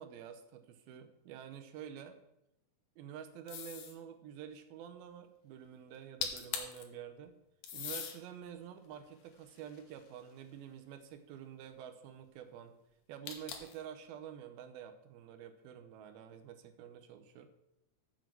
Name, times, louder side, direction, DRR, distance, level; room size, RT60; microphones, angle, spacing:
voice 1, 0.0-2.2 3.0-7.4 7.7-12.8 13.1-17.5, right 9 dB, 85° right, 8 dB, 2.6 m, -49 dB
sound 1, 3.5-4.0 5.9-6.0 6.2-6.8 7.6-8.2 8.8-10.3 13.3-13.8, left 8 dB, 75° left, 2.8 m, -41 dB
7.2 x 6.1 x 7.3 m, 0.87 s
omnidirectional pair, 4.3 m